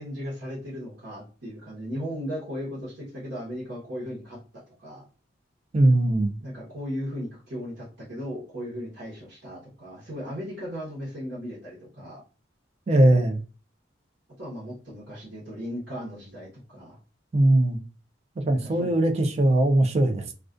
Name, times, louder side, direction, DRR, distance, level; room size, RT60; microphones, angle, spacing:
voice 1, 0.0-4.4 4.8-5.1 6.4-12.2 14.4-17.0 18.5-19.0, equal, 60° right, 0.9 m, -36 dB
voice 2, 5.7-6.4 12.9-13.4 17.3-17.8 18.5-20.3, right 1 dB, 35° right, 0.3 m, -20 dB
2.3 x 2.2 x 2.4 m
head